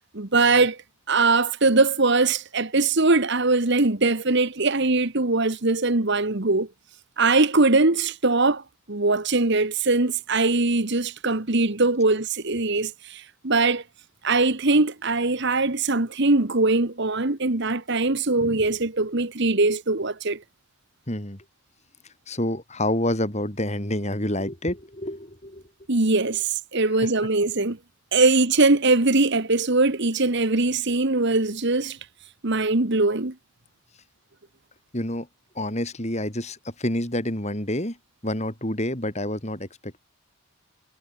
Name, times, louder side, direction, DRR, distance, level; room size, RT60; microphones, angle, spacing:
voice 1, 0.1-0.8 1.1-6.7 7.2-13.8 14.2-20.4 25.9-27.8 28.1-32.0 32.4-33.3, right 3 dB, 50° right, 1.5 m, -21 dB
voice 2, 21.1-21.4 22.3-25.6 27.0-27.1 34.9-35.3 35.5-38.0 38.2-40.0, left 1 dB, 30° left, 4.5 m, -28 dB
head